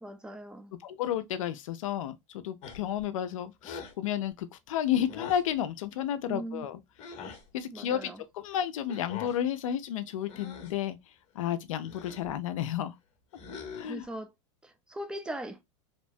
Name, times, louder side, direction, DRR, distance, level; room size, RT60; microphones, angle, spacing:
voice 1, 0.0-0.7 6.2-6.7 7.7-8.2 13.9-14.3 14.6-15.6, right 1 dB, 5° right, 0.4 m, -39 dB
voice 2, 0.8-6.8 7.5-11.0 11.3-13.0 13.8-14.1, left 10 dB, 85° left, 0.5 m, -32 dB
sound 1, 2.6-3.0 3.6-4.0 5.1-5.5 7.0-7.4 8.9-9.4 10.2-10.8 11.8-12.3 13.3-14.0, left 6 dB, 40° left, 0.9 m, -43 dB
2.9 x 2.1 x 2.6 m
supercardioid pair, 125°, 17 cm